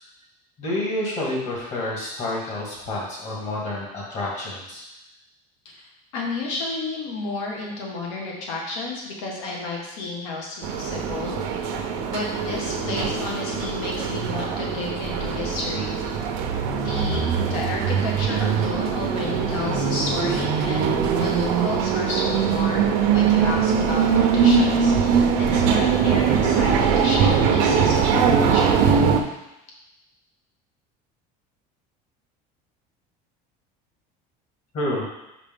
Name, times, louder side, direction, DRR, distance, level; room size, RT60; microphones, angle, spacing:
voice 1, 0.6-4.8 34.7-35.1, left 1 dB, 40° left, -4 dB, 2.0 m, -28 dB
voice 2, 6.1-11.8 12.1-16.1 16.8-29.2, left 3 dB, 80° left, -1 dB, 1.7 m, -31 dB
sound 1, 10.6-29.2, right 6 dB, 80° right, 0.7 m, -21 dB
5.5 x 5.0 x 3.7 m, 0.91 s
cardioid pair, 170°, 18 cm